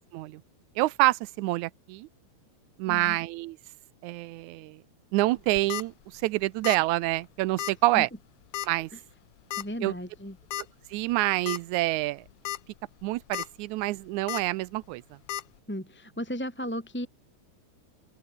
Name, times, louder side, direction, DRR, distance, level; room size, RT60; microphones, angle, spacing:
voice 1, 0.8-2.1 2.8-3.6 4.0-4.8 5.1-8.1 8.7-8.9 9.8-9.9 10.9-12.3 13.0-15.0, right 18 dB, 90° right, 2.0 m, -27 dB
voice 2, 2.9-3.2 7.9-8.1 8.9-9.0 9.6-10.4 15.7-17.1, equal, 5° left, 2.9 m, -35 dB
sound 1, 5.4-5.8 6.6-6.9 7.1-7.2 7.6-7.7 8.5-8.8 9.5-9.6 10.5-10.6 11.1-11.2 11.5-11.6 12.3-12.6 13.0-13.5 14.3-14.4 15.3-15.4, left 14 dB, 70° left, 1.6 m, -33 dB
open air
omnidirectional pair, 3.4 m